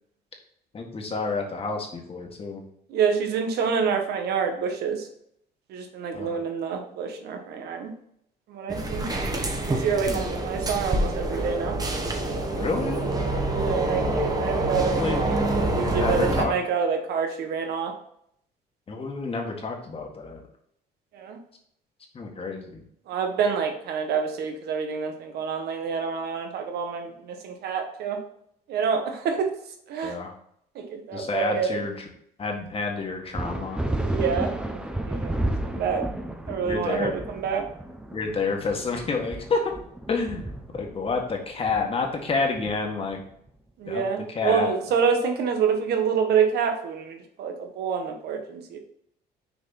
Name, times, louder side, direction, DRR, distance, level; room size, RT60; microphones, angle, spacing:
voice 1, 0.7-2.6 6.1-6.4 10.1-10.3 12.5-13.0 14.7-15.2 15.6-16.5 18.9-20.4 22.1-22.8 30.0-30.3 31.1-32.1 32.4-33.8 36.6-37.1 38.1-39.7 40.1-43.2 43.9-44.0 44.3-44.7, left 4 dB, 35° left, 2 dB, 1.8 m, -29 dB
voice 2, 2.9-5.1 5.7-7.9 8.5-9.1 9.7-11.8 13.5-17.9 21.1-21.4 23.1-28.2 28.7-29.5 29.9-30.2 30.7-31.8 34.0-34.8 35.0-36.1 36.5-37.6 43.8-48.8, right 6 dB, 70° right, 4 dB, 1.5 m, -27 dB
sound 1, 8.7-16.5, right 2 dB, 20° right, 1.3 m, -26 dB
sound 2, 33.3-43.3, right 1 dB, 5° right, 0.8 m, -32 dB
6.5 x 4.6 x 4.2 m, 0.69 s
cardioid pair, 110°, 17 cm